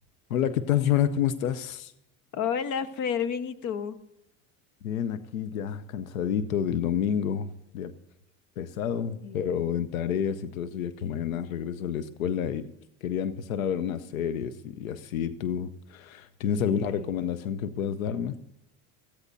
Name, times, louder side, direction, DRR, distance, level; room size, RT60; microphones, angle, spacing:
voice 1, 0.3-1.9 4.8-7.9 8.6-12.6 13.0-18.4, left 9 dB, 90° left, 12 dB, 0.8 m, -29 dB
voice 2, 2.3-4.0 9.2-9.7 16.5-17.1, left 7 dB, 45° left, 11 dB, 1.3 m, -31 dB
22.0 x 15.0 x 2.7 m, 0.83 s
hypercardioid pair, 95°, 40 cm